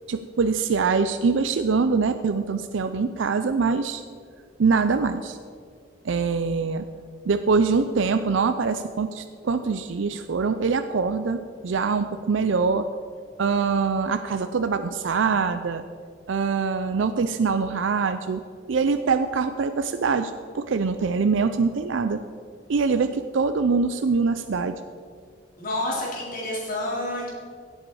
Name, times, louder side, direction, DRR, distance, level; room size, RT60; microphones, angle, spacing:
voice 1, 0.1-4.0 4.6-5.4 6.0-6.9 7.2-12.9 13.4-15.8 16.3-18.4 18.7-22.2 22.7-24.8, right 4 dB, 90° right, 9 dB, 0.5 m, -24 dB
voice 2, 25.6-27.3, left 1 dB, 50° left, -5 dB, 3.9 m, -29 dB
17.0 x 7.9 x 4.8 m, 2.1 s
head